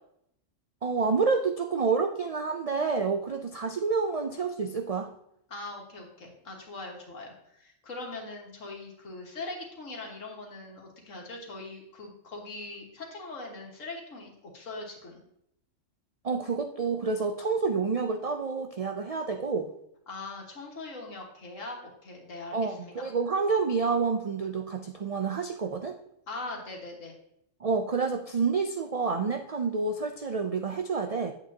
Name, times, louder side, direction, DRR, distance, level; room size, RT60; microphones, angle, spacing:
voice 1, 0.8-5.1 16.2-19.7 22.5-26.0 27.6-31.3, right 4 dB, 70° right, 5 dB, 0.3 m, -28 dB
voice 2, 5.5-15.2 20.1-22.9 26.3-27.2, left 2 dB, 80° left, 0 dB, 2.0 m, -41 dB
8.8 x 8.0 x 2.8 m, 0.76 s
omnidirectional pair, 1.3 m